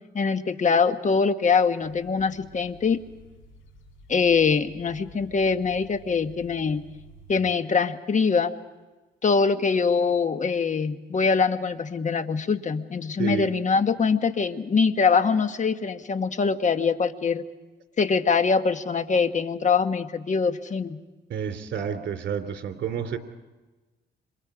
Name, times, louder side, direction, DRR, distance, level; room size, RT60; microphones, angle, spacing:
voice 1, 0.1-3.0 4.1-6.9 7.3-8.5 9.2-17.4 18.0-21.0, left 5 dB, 40° left, 9 dB, 1.4 m, -23 dB
sound 1, 1.8-7.4, right 1 dB, 85° left, 5.4 m, -51 dB
voice 2, 21.3-23.2, right 7 dB, 65° right, 6 dB, 3.1 m, -30 dB
30.0 x 26.5 x 5.0 m, 1.2 s
cardioid pair, 90°, 20 cm